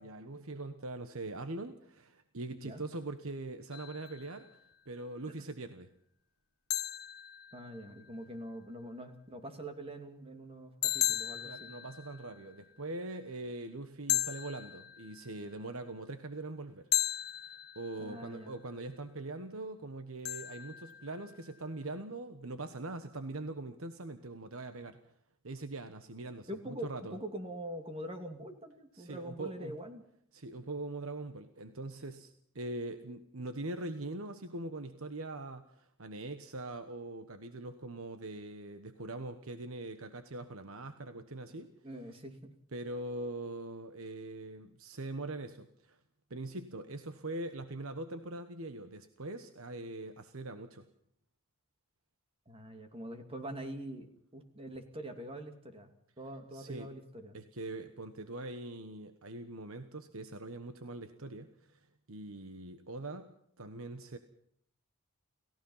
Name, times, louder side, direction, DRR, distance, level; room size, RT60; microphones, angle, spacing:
voice 1, 0.0-4.5 4.9-5.9 11.4-16.9 17.4-25.0 25.4-27.2 28.9-29.8 30.3-41.7 42.7-46.0 46.3-50.8 56.5-56.9 57.3-64.2, right 2 dB, 70° right, 9 dB, 1.2 m, -42 dB
voice 2, 2.5-2.8 5.4-5.5 7.5-11.7 18.0-18.6 26.5-30.0 41.8-42.5 52.5-55.9 56.2-57.4, right 1 dB, 25° right, 6 dB, 2.5 m, -44 dB
sound 1, 3.7-4.5 6.7-8.1 10.8-12.6 14.1-15.5 16.9-18.3 20.2-21.5, left 14 dB, 45° left, 0.8 m, -36 dB
29.5 x 15.5 x 5.7 m, 0.66 s
head